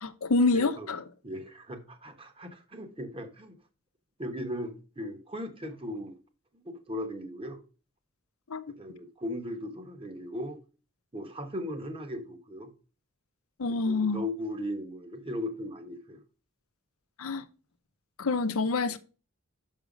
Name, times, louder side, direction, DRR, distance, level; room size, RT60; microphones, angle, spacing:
voice 1, 0.0-1.0 8.5-8.6 13.6-14.2 17.2-17.4 18.2-19.0, left 3 dB, 85° left, 0.7 m, -27 dB
voice 2, 0.5-0.9 1.2-3.6 4.2-6.1 6.5-7.6 8.8-10.6 11.1-12.7 13.8-16.2, left 1 dB, 25° right, 1.2 m, -37 dB
6.4 x 5.7 x 5.1 m
head